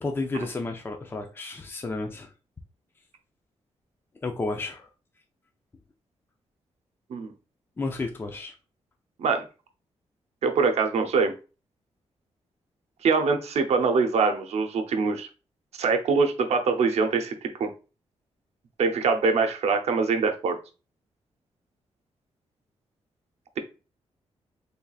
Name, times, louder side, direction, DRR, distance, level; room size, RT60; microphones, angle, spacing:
voice 1, 0.0-2.3 4.2-4.9 7.8-8.5, left 3 dB, 20° left, 0.5 m, -32 dB
voice 2, 10.4-11.3 13.0-15.3 15.8-17.7 18.8-20.6, right 4 dB, 75° right, 0.7 m, -23 dB
4.0 x 3.4 x 2.3 m
wide cardioid pair, 120°, 11 cm